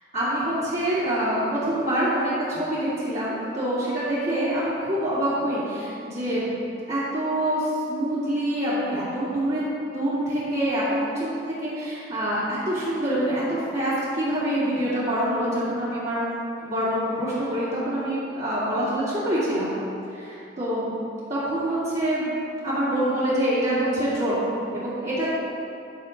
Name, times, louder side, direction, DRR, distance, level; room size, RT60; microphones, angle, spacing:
voice 1, 0.1-6.6 6.9-9.6 9.9-16.2 16.6-19.8 20.1-20.9 21.3-22.4 22.6-25.3, right 1 dB, 40° right, -13 dB, 2.7 m, -26 dB
11.5 x 6.8 x 5.2 m, 2.7 s
head